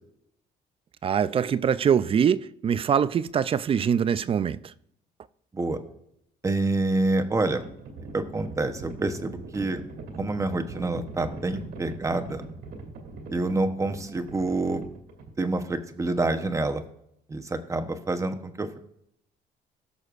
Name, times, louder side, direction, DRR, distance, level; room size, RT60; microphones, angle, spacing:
voice 1, 1.0-4.7, right 8 dB, 35° right, 0.4 m, -23 dB
voice 2, 6.4-7.6 8.1-9.8 10.2-12.4 13.3-14.8 15.4-16.8 17.3-18.8, right 2 dB, 20° right, 0.9 m, -27 dB
Livestock farm animals working animals, 7.2-15.7, right 2 dB, 80° right, 2.5 m, -41 dB
18.5 x 6.3 x 2.5 m
cardioid pair, 110°, 17 cm